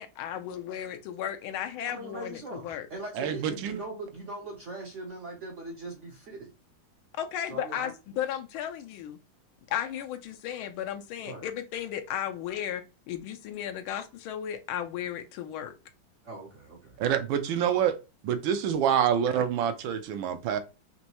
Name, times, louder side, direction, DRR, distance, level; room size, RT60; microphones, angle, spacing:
voice 1, 0.0-2.9 7.2-9.2 9.7-15.7, left 10 dB, 85° left, 1.5 m, -35 dB
voice 2, 1.9-6.5 7.4-7.9 11.2-11.5 16.2-17.0, right 2 dB, 60° right, 0.7 m, -40 dB
voice 3, 3.2-3.8 17.0-18.0 18.2-20.6, right 9 dB, 80° right, 1.3 m, -26 dB
4.4 x 3.0 x 2.9 m
omnidirectional pair, 2.2 m